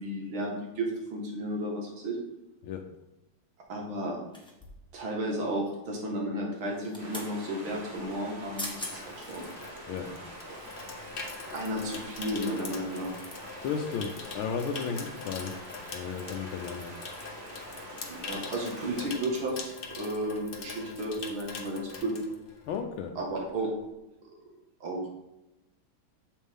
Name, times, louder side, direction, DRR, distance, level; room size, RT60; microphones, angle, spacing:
voice 1, 0.0-2.2 3.7-4.2 4.9-9.5 11.5-13.2 18.1-19.6 19.9-22.1 23.2-23.7 24.8-25.1, right 1 dB, 70° right, 0 dB, 2.5 m, -33 dB
sound 1, 4.3-4.9 6.6-7.3 8.3-8.4 8.6-9.0 9.5-9.6, left 1 dB, 5° left, 1.0 m, -40 dB
sound 2, 7.0-19.0, right 1 dB, 50° right, 2.4 m, -45 dB
Water tap faucet / Sink (filling or washing), 8.0-22.9 23.2-23.5, left 4 dB, 55° left, 0.6 m, -43 dB
voice 2, 13.6-15.5 15.9-16.9 22.7-23.1, left 6 dB, 75° left, 4 dB, 1.5 m, -34 dB
7.3 x 7.2 x 3.6 m, 0.95 s
omnidirectional pair, 2.3 m